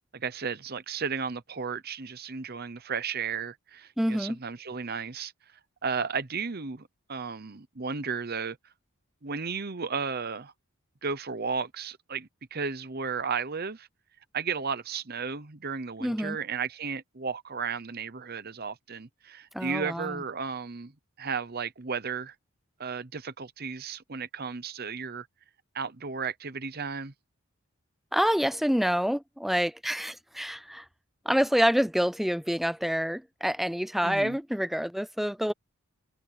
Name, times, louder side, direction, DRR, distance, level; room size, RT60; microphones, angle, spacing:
voice 1, 0.1-5.3 5.8-8.6 9.2-10.5 11.0-13.9 14.3-20.9 21.2-22.3 22.8-25.3 25.7-27.1 34.0-34.4, right 5 dB, 45° right, 0.9 m, -34 dB
voice 2, 4.0-4.4 16.0-16.4 19.5-20.2 28.1-30.9 31.3-35.5, equal, ahead, 0.4 m, -27 dB
head